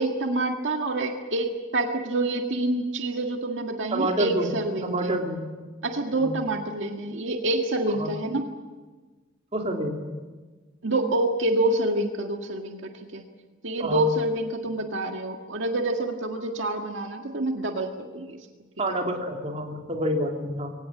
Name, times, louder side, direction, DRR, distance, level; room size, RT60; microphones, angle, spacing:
voice 1, 0.0-5.1 5.8-8.5 10.8-13.2 13.6-18.4, right 2 dB, 70° right, 3 dB, 1.8 m, -27 dB
voice 2, 3.9-4.5 4.8-5.4 6.1-6.3 8.0-8.1 9.5-10.1 13.8-14.1 18.8-20.7, right 1 dB, 30° right, 1 dB, 3.0 m, -28 dB
23.5 x 17.5 x 8.7 m, 1.3 s
head